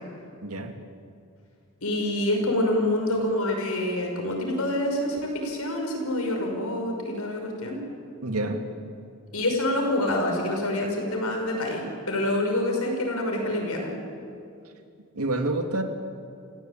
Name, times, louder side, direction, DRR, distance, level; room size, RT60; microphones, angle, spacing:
voice 1, 0.4-0.7 8.2-8.6 15.1-15.8, right 2 dB, 85° right, 5 dB, 2.4 m, -27 dB
voice 2, 1.8-7.8 9.3-13.9, left 1 dB, 80° left, 1 dB, 6.0 m, -26 dB
29.0 x 17.0 x 8.8 m, 2.4 s
head